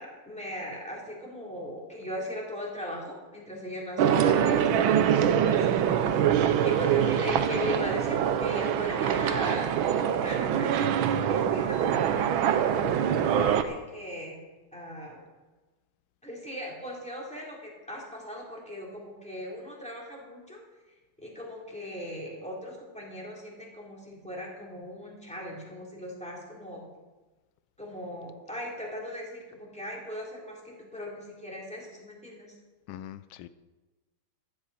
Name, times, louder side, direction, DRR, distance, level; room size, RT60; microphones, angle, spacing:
voice 1, 0.0-5.9 6.6-12.1 13.1-14.4 14.7-15.2 16.2-20.6 21.2-26.8 27.8-32.5, equal, 5° left, -4 dB, 3.6 m, -38 dB
sound 1, 4.0-13.6, right 9 dB, 80° right, 1.6 m, -24 dB
voice 2, 12.7-13.8 32.9-33.5, left 11 dB, 85° left, 12 dB, 1.4 m, -43 dB
15.0 x 13.5 x 4.3 m, 1.2 s
omnidirectional pair, 2.2 m